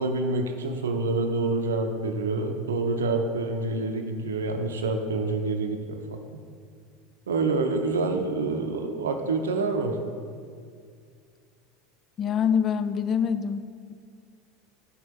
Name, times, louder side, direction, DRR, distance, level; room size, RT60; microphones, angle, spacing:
voice 1, 0.0-6.2 7.3-10.0, right 3 dB, 70° right, 5 dB, 0.6 m, -27 dB
voice 2, 12.2-14.0, left 7 dB, 35° left, 12 dB, 0.3 m, -26 dB
9.3 x 6.1 x 2.9 m, 2.2 s
figure-of-eight pair, 75°, 0 cm